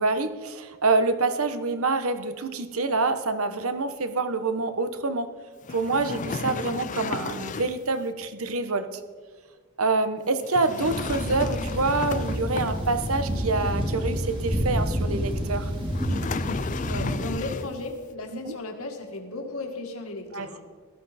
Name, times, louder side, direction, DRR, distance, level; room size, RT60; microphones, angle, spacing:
voice 1, 0.0-5.3 5.7-9.0 9.8-15.7 18.4-18.5 20.3-20.5, right 3 dB, 75° right, 10 dB, 1.1 m, -26 dB
sound 1, 5.6-7.9 10.4-13.2 15.9-17.9, left 4 dB, 35° left, 0.4 m, -34 dB
sound 2, 10.8-17.3, equal, 20° right, 2.3 m, -29 dB
voice 2, 16.9-20.6, left 2 dB, 75° left, 3 dB, 1.9 m, -35 dB
17.0 x 14.0 x 4.3 m, 1.5 s
head